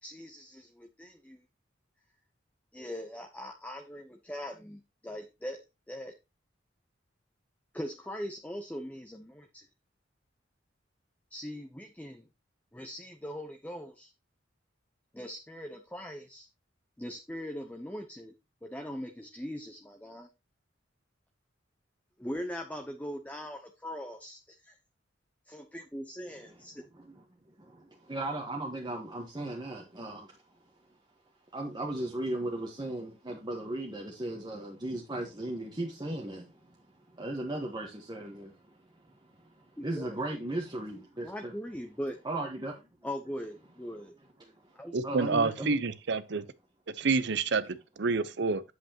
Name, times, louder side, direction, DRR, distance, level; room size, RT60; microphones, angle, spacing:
voice 1, 0.0-1.4 2.7-6.1 7.7-9.7 11.3-12.3 12.7-14.1 15.1-16.5 17.0-18.3 18.6-20.3 22.2-24.8 25.5-26.8 39.8-40.1 41.2-42.2 43.0-44.1 44.7-45.0, equal, 10° left, 0.8 m, -41 dB
voice 2, 27.6-30.3 31.5-36.5 37.1-38.5 39.6-41.5 42.2-42.8 45.0-45.8, right 1 dB, 25° right, 1.3 m, -36 dB
voice 3, 44.9-46.4 47.0-48.6, right 4 dB, 65° right, 0.7 m, -28 dB
8.1 x 7.9 x 2.9 m
head